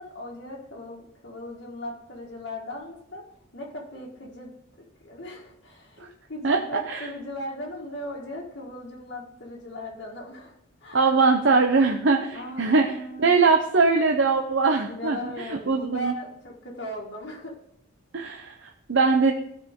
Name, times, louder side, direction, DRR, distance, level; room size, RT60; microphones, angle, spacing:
voice 1, 0.0-3.2 3.5-4.5 5.0-10.5 10.8-11.1 12.3-13.5 14.9-17.6, left 1 dB, 60° left, -5 dB, 1.7 m, -38 dB
voice 2, 10.9-16.1 18.1-19.3, right 4 dB, 60° right, 3 dB, 0.7 m, -22 dB
15.5 x 5.2 x 3.7 m, 0.77 s
head